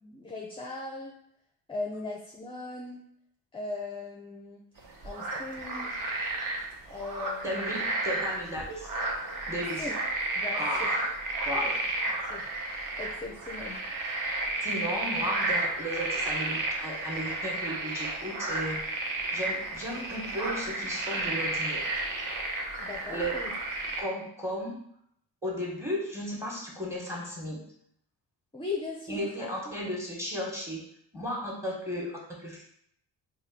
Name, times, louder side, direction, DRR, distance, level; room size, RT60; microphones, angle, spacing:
voice 1, 0.0-1.1 1.7-3.0 3.5-4.6 5.0-5.9 6.9-7.8 9.8-9.9 10.4-10.9 12.2-12.5 13.0-13.8 22.8-23.5 28.5-29.7, left 3 dB, 15° left, -1 dB, 0.5 m, -38 dB
sound 1, 4.8-24.0, right 2 dB, 50° right, 0.8 m, -32 dB
voice 2, 7.4-8.9 9.5-9.8 10.5-11.1 11.4-11.8 14.2-18.8 19.3-21.9 23.1-23.4 24.0-24.8 25.4-27.6 29.1-30.8 31.1-32.6, equal, 5° right, -3 dB, 1.2 m, -35 dB
3.0 x 2.4 x 4.2 m, 0.70 s
cardioid pair, 80°, 42 cm